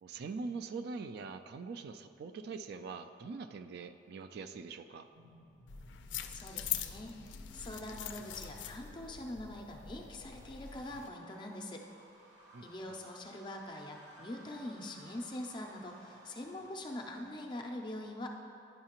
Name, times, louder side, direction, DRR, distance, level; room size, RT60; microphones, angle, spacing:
voice 1, 0.0-5.1 12.5-12.7, right 4 dB, 60° right, 10 dB, 0.3 m, -43 dB
sound 1, 5.1-17.4, equal, 85° right, 1.4 m, -59 dB
sound 2, 5.7-11.1, left 10 dB, 90° left, 0.4 m, -43 dB
voice 2, 6.3-11.8 12.6-18.3, left 1 dB, 25° left, 2 dB, 0.4 m, -43 dB
9.4 x 5.6 x 2.9 m, 2.6 s
head